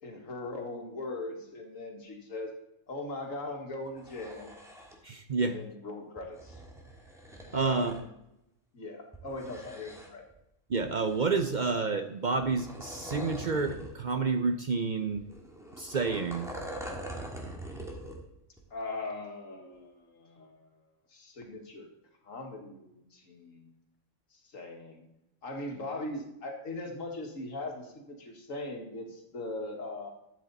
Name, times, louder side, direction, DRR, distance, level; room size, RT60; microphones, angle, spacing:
voice 1, 0.0-2.5 2.9-4.5 5.4-6.6 7.5-8.1 8.7-10.2 18.7-20.7 21.1-21.9 22.2-23.7 24.3-25.0 25.4-30.1, left 2 dB, 85° left, 2 dB, 2.2 m, -40 dB
sound 1, 3.9-5.0 6.2-8.0 9.1-10.3 10.8-11.7 12.4-14.0 14.3-14.4 15.2-18.2 18.6-18.7, equal, ahead, 1.8 m, -43 dB
voice 2, 5.0-5.6 7.5-7.9 10.7-15.3 15.8-16.5, right 4 dB, 50° right, 8 dB, 0.6 m, -29 dB
12.0 x 8.2 x 4.0 m, 0.85 s
omnidirectional pair, 1.3 m